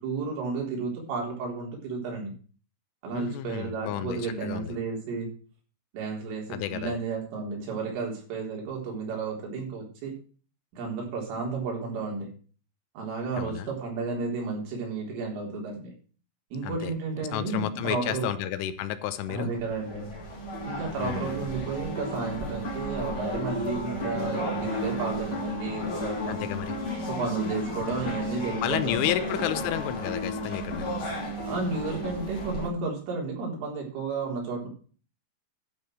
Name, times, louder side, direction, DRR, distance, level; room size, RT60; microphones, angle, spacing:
voice 1, 0.0-2.3 3.0-5.3 5.9-10.2 10.7-12.3 13.0-15.9 16.5-18.3 19.3-20.1 20.6-26.4 27.1-29.0 31.5-34.7, right 4 dB, 70° right, -1 dB, 6.3 m, -32 dB
voice 2, 3.1-4.7 6.5-6.9 13.3-13.7 16.6-16.9 17.3-19.5 21.0-21.4 26.3-26.8 27.9-28.1 28.6-30.9, left 12 dB, 80° left, 11 dB, 3.2 m, -31 dB
sound 1, 19.6-32.7, equal, 30° left, 3.2 m, -33 dB
12.0 x 5.5 x 7.8 m, 0.40 s
omnidirectional pair, 6.0 m